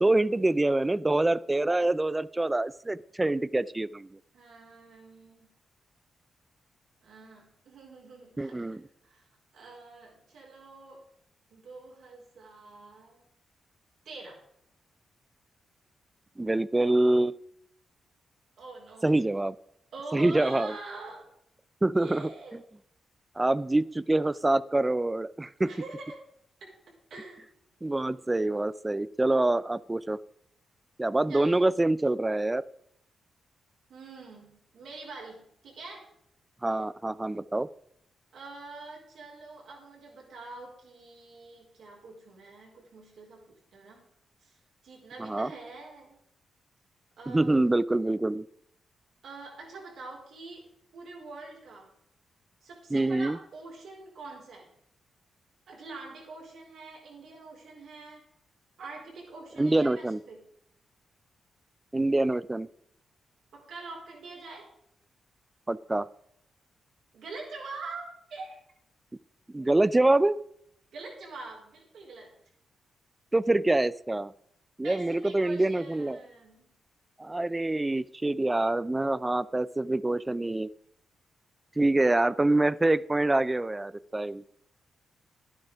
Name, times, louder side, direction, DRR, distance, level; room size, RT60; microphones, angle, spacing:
voice 1, 0.0-4.2 8.4-8.8 16.4-17.4 19.0-19.6 20.1-20.7 21.8-22.3 23.4-25.7 27.8-30.2 31.0-32.7 36.6-37.7 45.2-45.5 47.3-48.5 52.9-53.4 59.6-60.2 61.9-62.7 65.7-66.1 69.5-70.4 73.3-74.3 74.8-76.2 77.2-80.7 81.8-84.4, right 2 dB, 20° right, 19 dB, 0.5 m, -25 dB
voice 2, 4.3-5.5 7.0-9.2 9.5-11.0 11.5-13.2 14.0-14.4 18.6-19.1 19.9-21.3 21.9-22.6 25.6-26.3 26.6-27.5 31.3-31.8 33.9-36.1 38.3-44.1 44.4-44.6 44.8-46.2 47.2-47.7 49.2-50.7 50.9-51.9 52.6-54.7 55.7-58.2 58.8-60.4 63.5-64.7 67.1-68.6 70.9-72.3 74.8-76.7, right 3 dB, 75° right, -1 dB, 4.6 m, -45 dB
11.5 x 9.7 x 5.1 m, 0.73 s
cardioid pair, 65°, 0 cm